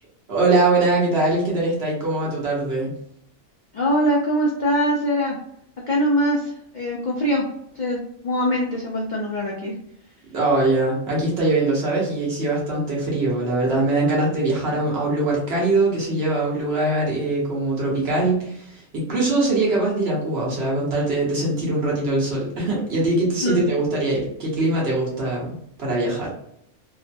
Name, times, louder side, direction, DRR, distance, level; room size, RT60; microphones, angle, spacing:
voice 1, 0.3-2.9 10.3-26.3, right 2 dB, 55° right, -4 dB, 1.1 m, -22 dB
voice 2, 3.7-5.3 5.9-7.4 7.7-8.0 8.2-9.7 23.4-23.6, equal, 60° left, -3 dB, 0.5 m, -22 dB
3.0 x 2.1 x 2.5 m, 0.73 s
omnidirectional pair, 1.4 m